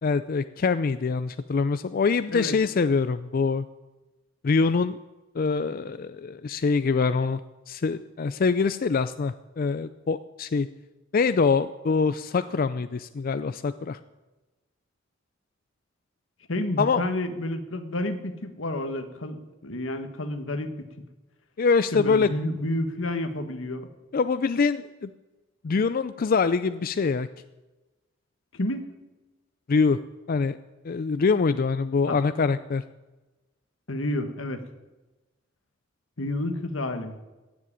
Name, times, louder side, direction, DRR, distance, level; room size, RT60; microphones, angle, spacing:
voice 1, 0.0-3.7 4.4-5.0 5.3-7.4 7.7-10.7 11.1-14.0 16.8-17.0 21.6-22.3 24.1-25.1 25.6-27.3 29.7-30.0 30.3-30.6 30.8-32.8, left 4 dB, 45° left, 12 dB, 0.4 m, -24 dB
voice 2, 16.5-20.9 21.9-23.9 28.5-28.9 32.0-32.2 33.9-34.6 36.2-37.2, left 1 dB, 85° left, 8 dB, 1.5 m, -30 dB
16.0 x 7.6 x 9.9 m, 1.1 s
head